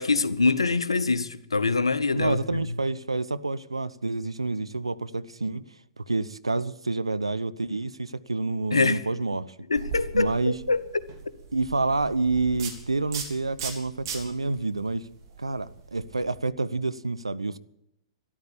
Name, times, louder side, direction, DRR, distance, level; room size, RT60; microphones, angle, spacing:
voice 1, 0.0-2.8 8.7-9.0 9.7-10.8, left 3 dB, 80° left, 0.9 m, -24 dB
voice 2, 2.1-5.6 6.0-9.5 10.1-10.6 11.5-15.1 15.4-17.6, right 3 dB, 85° right, 0.7 m, -28 dB
sound 1, 9.8-16.4, right 5 dB, 55° right, 3.3 m, -39 dB
13.5 x 11.5 x 8.6 m
figure-of-eight pair, 110°, 3 cm